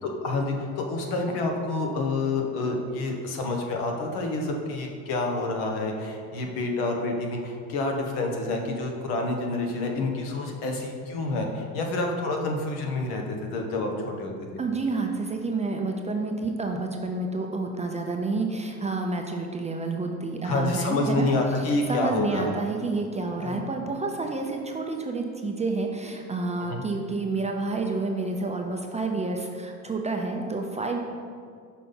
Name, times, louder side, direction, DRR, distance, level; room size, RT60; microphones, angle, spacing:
voice 1, 0.0-14.6 20.4-22.6 23.4-23.7 26.6-26.9, left 2 dB, 65° left, 2 dB, 1.2 m, -28 dB
voice 2, 14.6-21.3 21.6-31.0, right 3 dB, 15° right, 2 dB, 0.5 m, -29 dB
5.8 x 4.1 x 5.5 m, 2.2 s
supercardioid pair, 95°, 41 cm